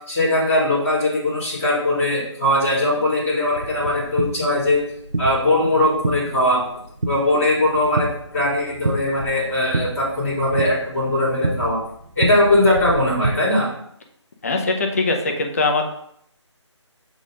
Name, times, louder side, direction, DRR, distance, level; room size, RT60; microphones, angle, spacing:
voice 1, 0.1-4.8 5.2-6.6 7.0-11.8 12.1-13.7, left 1 dB, ahead, -23 dB, 0.3 m, -20 dB
sound 1, 3.5-13.3, right 2 dB, 85° right, 1.0 m, -29 dB
voice 2, 14.4-15.8, left 3 dB, 30° left, 4 dB, 0.7 m, -21 dB
7.0 x 3.8 x 3.8 m, 0.71 s
figure-of-eight pair, 160°, 16 cm